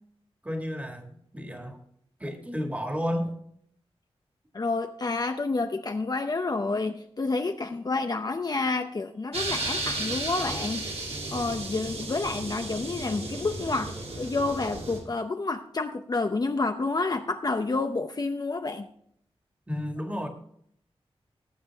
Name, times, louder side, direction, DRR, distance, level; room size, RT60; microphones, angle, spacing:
voice 1, 0.4-1.8 2.2-3.3 19.7-20.3, equal, 15° right, 4 dB, 1.9 m, -32 dB
voice 2, 4.5-10.8 11.3-18.9, left 3 dB, 40° left, 6 dB, 0.6 m, -29 dB
sound 1, 9.3-15.0, right 2 dB, 80° right, 2.8 m, -34 dB
17.5 x 7.2 x 3.4 m, 0.66 s
wide cardioid pair, 100°, 11 cm